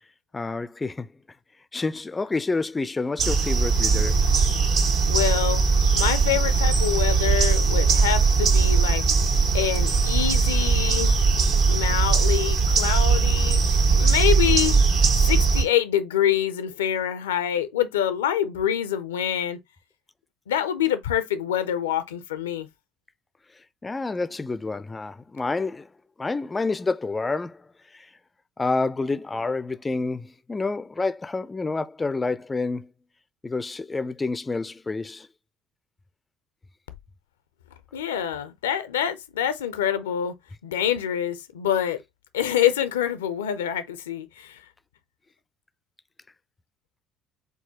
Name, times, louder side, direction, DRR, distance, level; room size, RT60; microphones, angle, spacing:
voice 1, 0.3-1.1 1.7-4.2 4.7-4.8 23.8-25.9 26.2-27.6 27.9-28.1 28.6-32.9 33.4-35.3, left 3 dB, 20° left, 0.4 m, -28 dB
sound 1, 3.2-15.6, right 5 dB, 65° right, 1.8 m, -20 dB
voice 2, 5.1-5.6 5.9-9.1 9.5-11.1 11.7-14.8 15.2-19.6 20.5-22.7 37.9-40.3 40.6-42.0 42.3-44.6, left 10 dB, 80° left, 0.5 m, -26 dB
4.6 x 4.1 x 2.8 m
figure-of-eight pair, 55°, 0 cm